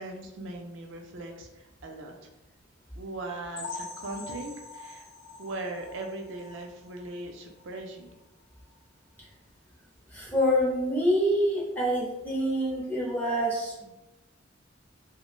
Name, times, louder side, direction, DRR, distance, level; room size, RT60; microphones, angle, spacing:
voice 1, 0.0-2.3 3.0-5.1 5.4-8.1, right 2 dB, 65° right, 3 dB, 0.4 m, -39 dB
sound 1, 3.6-7.2 7.6-7.7 8.1-8.2 8.7-8.8, left 4 dB, 80° left, 0.5 m, -43 dB
voice 2, 10.1-13.8, equal, 10° left, -5 dB, 0.6 m, -26 dB
3.0 x 2.1 x 2.3 m, 0.94 s
head